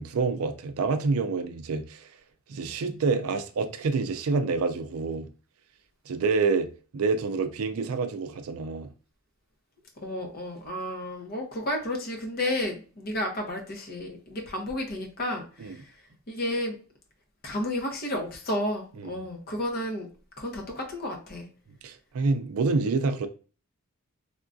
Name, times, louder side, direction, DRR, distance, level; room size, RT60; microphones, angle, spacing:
voice 1, 0.0-2.1 2.5-5.3 6.1-6.7 6.9-8.9 15.6-15.8 19.0-19.2 21.8-23.3, right 4 dB, 80° right, 0.4 m, -27 dB
voice 2, 10.0-16.0 16.3-16.7 17.4-20.1 20.4-21.5, left 1 dB, 45° left, 0.8 m, -32 dB
3.5 x 2.3 x 2.5 m
head